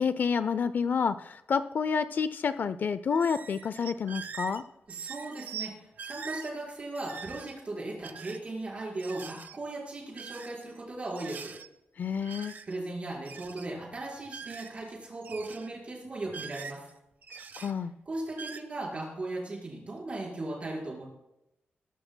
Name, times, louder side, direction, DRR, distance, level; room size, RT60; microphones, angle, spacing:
voice 1, 0.0-4.6 12.0-12.5 17.3-17.9, left 6 dB, 50° left, 13 dB, 0.4 m, -29 dB
sound 1, 3.1-4.6 4.9-5.7 6.0-6.5 6.9-7.5 8.0-8.5 9.0-9.6 10.2-10.8 11.1-11.7 12.2-12.9 13.1-13.7 14.3-14.9 15.2-15.7 16.3-16.9 17.2-17.7 18.3-18.6, right 6 dB, 50° right, 0.6 m, -43 dB
voice 2, 4.9-11.5 12.7-16.9 18.0-21.0, right 2 dB, 30° right, -3 dB, 4.5 m, -37 dB
21.0 x 12.0 x 2.2 m, 0.88 s
wide cardioid pair, 175°, 4 cm